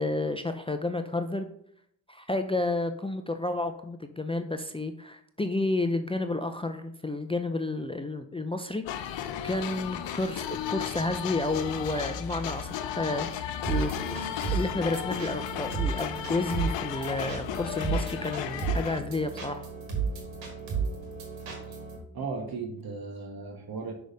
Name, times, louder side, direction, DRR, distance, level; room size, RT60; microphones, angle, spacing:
voice 1, 0.0-1.5 2.1-14.2 14.5-19.7, left 2 dB, 15° left, 7 dB, 0.5 m, -31 dB
sound 1, 8.8-19.0, left 9 dB, 75° left, 0.7 m, -34 dB
sound 2, 13.6-22.0, right 5 dB, 85° right, 1.8 m, -33 dB
voice 2, 22.1-23.9, right 4 dB, 55° right, 2 dB, 1.3 m, -36 dB
6.2 x 3.5 x 5.2 m, 0.70 s
supercardioid pair, 50°, 45 cm